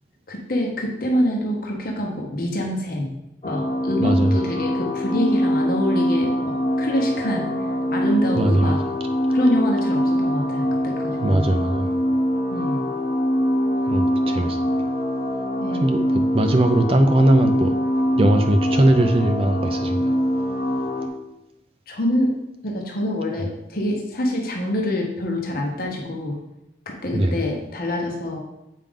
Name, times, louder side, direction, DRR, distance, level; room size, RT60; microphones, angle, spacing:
voice 1, 0.3-3.1 3.4-8.8 9.3-11.5 12.5-12.9 15.6-16.0 21.9-22.3 22.6-26.4 26.9-28.4, left 1 dB, 50° left, 0 dB, 1.0 m, -26 dB
sound 1, 3.4-21.1, equal, 35° left, 0.7 m, -23 dB
voice 2, 4.0-4.3 8.4-8.8 11.2-11.9 13.9-14.6 15.8-17.7 18.2-20.1 27.1-27.4, right 1 dB, 30° right, 6 dB, 0.4 m, -19 dB
7.4 x 5.0 x 3.7 m, 0.90 s
head